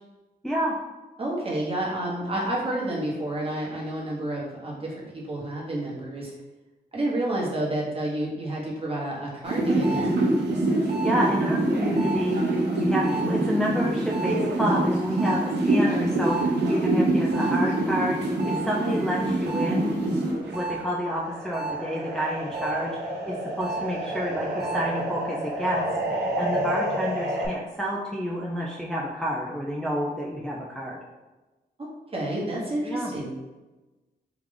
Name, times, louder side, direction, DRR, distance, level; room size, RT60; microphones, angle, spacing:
voice 1, 0.4-0.8 2.4-2.5 10.7-19.9 20.5-31.0 32.8-33.1, equal, 5° left, -4 dB, 0.5 m, -29 dB
voice 2, 1.2-6.3 6.9-10.2 32.1-33.3, right 1 dB, 35° right, -4 dB, 1.2 m, -30 dB
sound 1, 9.4-20.7 21.1-27.5, right 2 dB, 85° right, 1.0 m, -26 dB
4.7 x 2.4 x 3.7 m, 1.1 s
wide cardioid pair, 125°, 17 cm